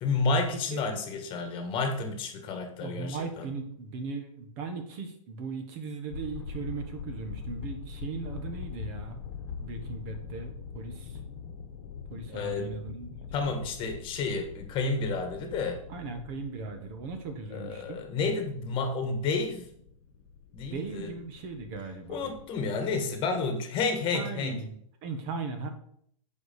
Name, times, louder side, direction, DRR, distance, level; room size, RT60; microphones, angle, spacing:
voice 1, 0.0-3.5 12.3-12.7 13.3-15.8 17.5-19.7 20.5-21.1 22.1-24.6, left 4 dB, 30° left, 6 dB, 1.5 m, -30 dB
voice 2, 2.8-9.2 9.6-11.2 12.1-13.1 13.4-13.6 15.9-18.0 20.7-22.3 24.1-24.7 25.0-25.7, right 4 dB, 40° right, 6 dB, 1.6 m, -38 dB
sound 1, 6.1-23.3, left 6 dB, 55° left, 1.3 m, -43 dB
8.1 x 4.8 x 6.9 m, 0.68 s
hypercardioid pair, 130°, 17 cm